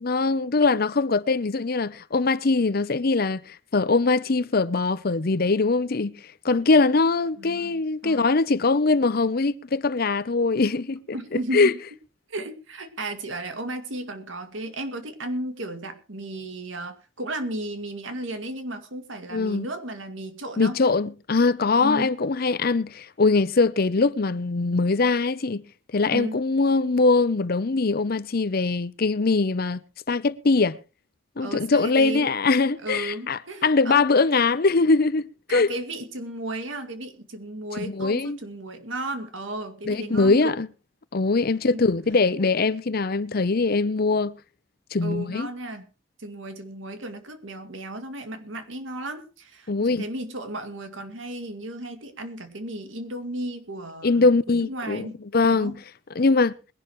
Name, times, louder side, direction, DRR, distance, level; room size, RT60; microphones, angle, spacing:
voice 1, 0.0-6.2 6.4-11.0 11.3-11.7 19.3-19.7 20.6-25.6 25.9-30.8 31.4-35.2 35.5-35.7 37.8-38.4 39.9-40.7 41.1-44.4 44.9-45.5 49.7-50.1 54.0-55.1 55.3-55.7 56.2-56.5, left 3 dB, 50° left, 0.7 m, -22 dB
voice 2, 7.4-8.3 11.1-11.8 12.3-20.8 21.8-22.1 26.1-26.4 31.4-32.3 32.8-34.1 35.5-40.5 41.7-41.8 45.0-45.9 46.2-55.2 55.5-55.8, right 1 dB, 75° right, 2.2 m, -34 dB
21.5 x 11.5 x 3.1 m
head